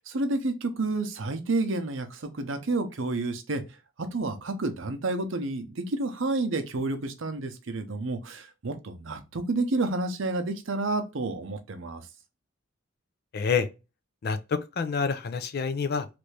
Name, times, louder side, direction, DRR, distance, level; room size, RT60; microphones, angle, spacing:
voice 1, 0.1-3.6 4.1-12.1, right 2 dB, 70° right, 0.6 m, -30 dB
voice 2, 13.3-13.7 14.2-16.1, left 5 dB, 50° left, 0.4 m, -27 dB
3.2 x 2.6 x 3.2 m
head